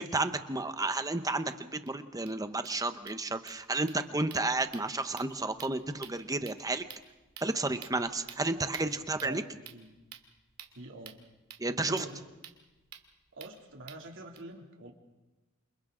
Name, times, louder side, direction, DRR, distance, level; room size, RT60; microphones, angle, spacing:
voice 1, 0.1-6.8 7.4-9.4 11.6-12.0, right 2 dB, 15° right, 9 dB, 1.0 m, -32 dB
sound 1, 1.1-1.2 1.5-1.6 1.9-2.0 2.2-14.4, right 10 dB, 85° right, 2.3 m, -52 dB
voice 2, 8.9-9.5 9.7-10.0 10.7-11.2 11.8-12.3 13.3-14.9, right 1 dB, 60° right, 1 dB, 2.9 m, -46 dB
29.0 x 27.5 x 3.9 m, 1.1 s
head